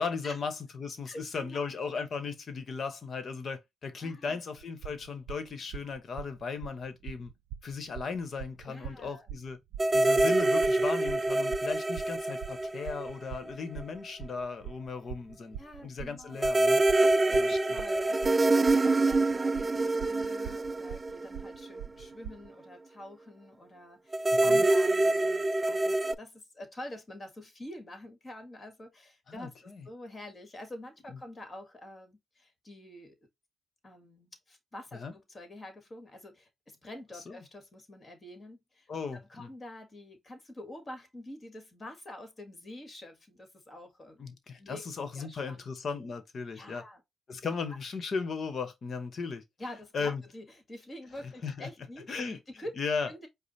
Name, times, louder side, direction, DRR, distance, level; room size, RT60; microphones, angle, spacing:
voice 1, 0.0-7.3 7.6-9.6 9.9-16.8 17.3-17.8 24.3-24.7 29.3-29.8 31.1-31.2 34.9-35.1 37.3-37.4 38.9-39.5 44.2-46.8 47.3-49.4 49.9-50.2 51.4-51.7 52.1-52.4 52.8-53.1, left 5 dB, 50° left, 1.1 m, -36 dB
voice 2, 1.0-1.7 4.0-4.4 8.7-9.3 10.1-10.3 15.6-16.4 17.0-33.2 33.8-44.2 44.6-45.6 46.5-47.0 49.6-52.1 52.5-52.8 53.1-53.3, left 1 dB, 30° left, 1.6 m, -47 dB
sound 1, 4.6-22.5, right 10 dB, 85° right, 0.5 m, -43 dB
sound 2, 9.8-13.5 13.8-13.9 16.4-21.8 24.1-26.1, right 2 dB, 20° right, 0.3 m, -26 dB
4.9 x 2.1 x 4.1 m
cardioid pair, 90°, 0 cm